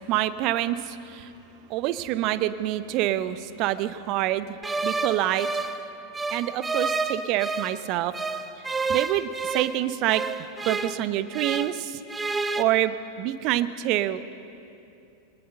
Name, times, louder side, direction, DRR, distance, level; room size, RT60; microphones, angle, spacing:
voice 1, 0.0-1.3 1.7-5.5 6.3-8.1 8.9-10.2 10.6-12.0 12.6-14.2, right 14 dB, 40° right, 14 dB, 0.8 m, -26 dB
sound 1, 4.6-7.8 8.1-11.8 12.1-12.6, right 3 dB, 10° right, 0.7 m, -30 dB
20.5 x 19.0 x 6.6 m, 2.8 s
figure-of-eight pair, 90°, 0 cm